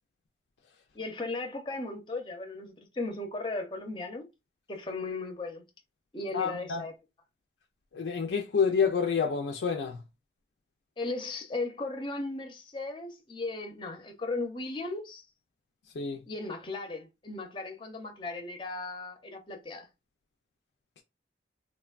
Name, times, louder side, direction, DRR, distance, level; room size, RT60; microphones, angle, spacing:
voice 1, 0.9-4.2 4.7-5.6 6.1-6.9 11.0-15.2 16.3-19.9, left 3 dB, 25° left, 0.5 m, -36 dB
voice 2, 6.3-6.8 7.9-10.0 15.9-16.2, left 6 dB, 90° left, 0.4 m, -28 dB
3.1 x 2.2 x 2.3 m
head